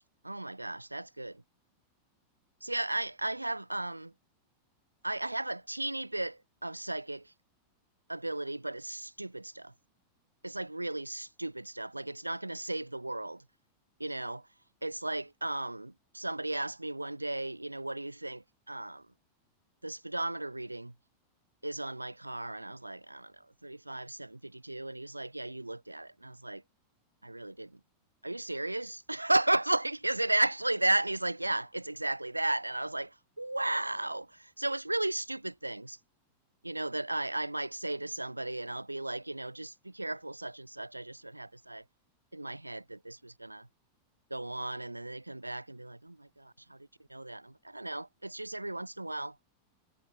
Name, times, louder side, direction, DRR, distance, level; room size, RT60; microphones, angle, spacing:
voice 1, 0.2-1.4 2.6-4.1 5.0-7.3 8.1-9.7 10.4-13.4 14.0-14.5 14.8-19.0 19.8-20.9 21.6-26.6 27.2-27.8 28.2-36.0 36.6-41.8 42.3-43.7 44.3-46.8 47.1-49.4, right 2 dB, 85° right, 5.3 m, -35 dB
figure-of-eight pair, 90°, 0 cm